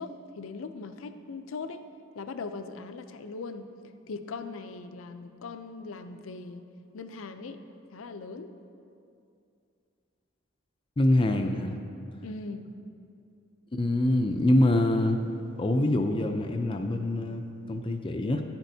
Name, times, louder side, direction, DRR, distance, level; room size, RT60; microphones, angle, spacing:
voice 1, 0.0-1.8 2.1-3.7 4.1-6.6 6.9-7.6 7.9-8.5 12.2-12.7, left 4 dB, 80° left, 9 dB, 0.5 m, -39 dB
voice 2, 11.0-11.8 13.7-15.2 15.6-18.4, left 1 dB, 25° left, 5 dB, 0.4 m, -25 dB
10.5 x 10.0 x 2.7 m, 2.6 s
head